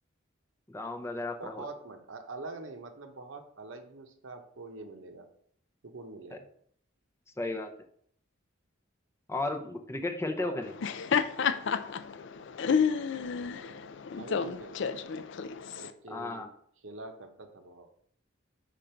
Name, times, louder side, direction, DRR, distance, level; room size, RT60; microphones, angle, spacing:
voice 1, 0.7-1.6 6.3-6.4 7.4-7.7 9.3-10.7 16.1-16.5, left 2 dB, 15° left, 5 dB, 0.5 m, -34 dB
voice 2, 1.4-5.3 5.8-6.5 10.4-10.6 12.7-13.8 14.2-15.0 15.8-16.5 16.8-17.9, right 3 dB, 75° right, 6 dB, 0.9 m, -45 dB
Laughter, 10.6-15.9, left 6 dB, 65° left, 0.4 m, -30 dB
5.1 x 5.1 x 4.4 m, 0.63 s
head